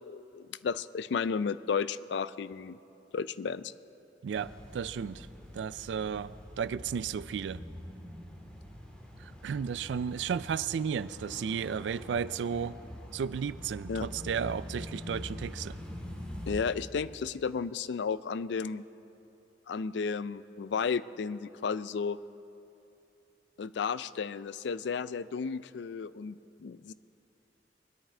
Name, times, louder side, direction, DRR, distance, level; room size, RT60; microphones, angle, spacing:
voice 1, 0.0-2.8 3.1-3.7 13.9-14.1 16.5-18.8 19.7-22.2 23.6-26.9, left 5 dB, 70° left, 16 dB, 0.4 m, -33 dB
voice 2, 4.2-5.3 5.5-7.6 9.2-12.8 13.1-15.8, right 7 dB, 75° right, 16 dB, 0.3 m, -34 dB
sound 1, 4.3-16.6, equal, 5° left, 2.1 m, -44 dB
22.0 x 10.5 x 4.4 m, 2.9 s
head